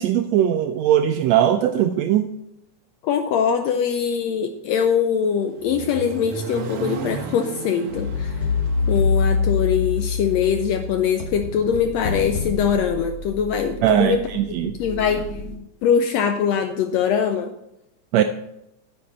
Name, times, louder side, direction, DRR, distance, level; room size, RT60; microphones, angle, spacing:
voice 1, 0.0-2.3 13.8-14.8 18.1-18.2, right 11 dB, 80° right, 7 dB, 1.5 m, -19 dB
voice 2, 3.0-8.5 8.9-14.2 14.6-15.2 15.8-17.5, left 7 dB, 80° left, 7 dB, 1.5 m, -22 dB
Accelerating revving vroom, 5.0-11.1, right 5 dB, 65° right, 1.5 m, -35 dB
sound 1, 7.9-15.6, left 4 dB, 65° left, 1.8 m, -26 dB
9.5 x 7.6 x 4.0 m, 0.83 s
omnidirectional pair, 3.5 m